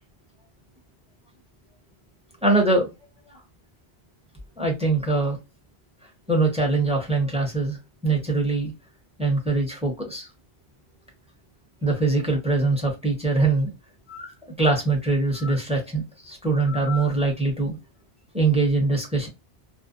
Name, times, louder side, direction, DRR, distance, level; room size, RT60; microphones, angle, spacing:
voice 1, 2.4-2.9 4.6-5.4 6.3-7.8 8.0-8.7 9.2-10.3 11.8-13.7 14.1-17.8 18.3-19.3, right 3 dB, 5° right, 0.7 m, -23 dB
2.6 x 2.0 x 2.4 m
omnidirectional pair, 1.1 m